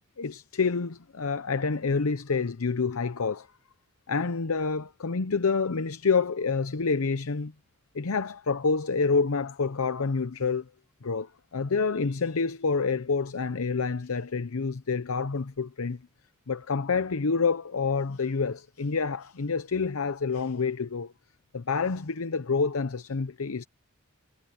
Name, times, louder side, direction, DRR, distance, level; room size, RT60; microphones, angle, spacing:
voice 1, 0.2-3.5 4.1-7.5 7.9-10.7 11.0-16.0 16.5-21.1 21.5-23.6, left 4 dB, 90° left, 0.7 m, -28 dB
head